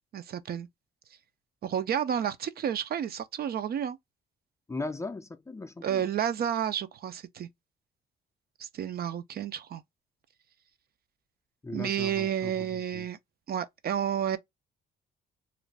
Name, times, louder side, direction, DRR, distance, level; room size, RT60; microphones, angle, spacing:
voice 1, 0.1-0.7 1.6-4.0 5.8-7.5 8.6-9.8 11.7-13.2 13.5-14.4, right 9 dB, 50° right, 0.4 m, -31 dB
voice 2, 4.7-6.0 11.6-13.1, left 3 dB, 15° left, 0.3 m, -38 dB
2.5 x 2.1 x 3.1 m
cardioid pair, 90°, 20 cm